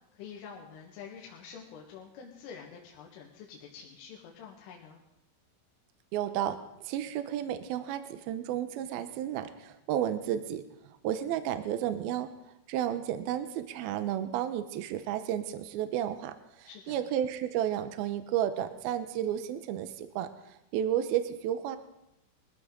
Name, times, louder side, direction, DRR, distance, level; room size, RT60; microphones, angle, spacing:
voice 1, 0.2-5.0 16.6-17.0, left 7 dB, 80° left, -2 dB, 4.1 m, -47 dB
voice 2, 6.1-10.7 11.0-12.3 12.7-21.8, right 10 dB, 90° right, 10 dB, 2.1 m, -32 dB
22.5 x 15.0 x 3.8 m, 0.84 s
omnidirectional pair, 5.6 m